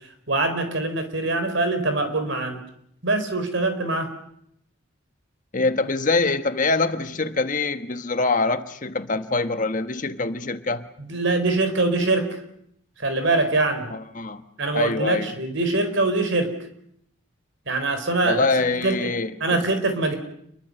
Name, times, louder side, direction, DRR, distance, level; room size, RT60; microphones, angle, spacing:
voice 1, 0.3-2.6 3.0-4.1 11.0-12.3 13.0-13.9 14.6-16.5 17.7-18.5 18.8-19.1 19.4-20.2, right 2 dB, 65° right, 4.5 m, -23 dB
voice 2, 5.5-10.8 13.9-14.4 14.7-15.3 18.2-19.6, left 3 dB, 40° left, 1.3 m, -24 dB
28.0 x 22.5 x 6.8 m
head